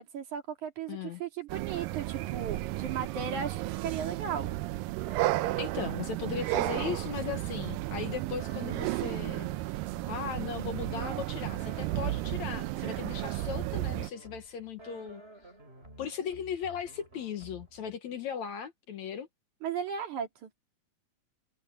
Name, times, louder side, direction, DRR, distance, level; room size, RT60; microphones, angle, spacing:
voice 1, 0.0-4.5 19.6-20.5, right 7 dB, 60° right, 3.7 m, -36 dB
voice 2, 0.9-1.2 5.6-9.5 10.1-15.2 16.0-19.3, left 7 dB, 65° left, 2.3 m, -37 dB
sound 1, 1.5-14.1, right 17 dB, 85° right, 2.3 m, -33 dB
sound 2, 5.1-18.0, right 1 dB, 15° right, 7.7 m, -52 dB
omnidirectional pair, 4.0 m